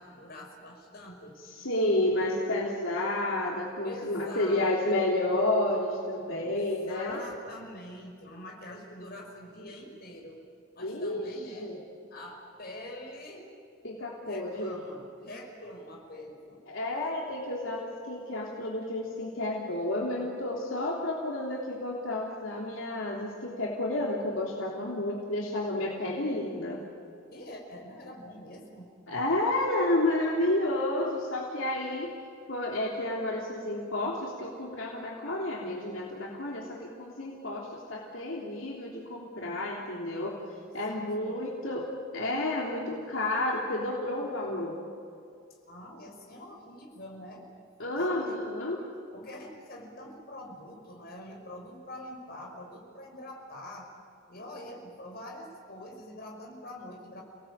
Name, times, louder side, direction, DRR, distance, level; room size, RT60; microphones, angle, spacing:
voice 1, 0.0-1.4 3.8-5.0 6.4-10.4 10.7-11.7 12.1-13.5 14.2-16.6 27.3-28.9 40.9-41.4 45.7-47.5 47.9-48.5 49.1-53.9 54.3-57.2, left 1 dB, 50° left, 0 dB, 5.7 m, -45 dB
voice 2, 1.4-7.2 10.8-11.8 13.8-14.8 16.7-26.8 29.1-32.1 32.5-40.3 40.7-41.8 42.1-44.8 47.8-48.8, left 1 dB, 70° left, -3 dB, 3.2 m, -31 dB
30.0 x 19.0 x 8.8 m, 2.4 s
head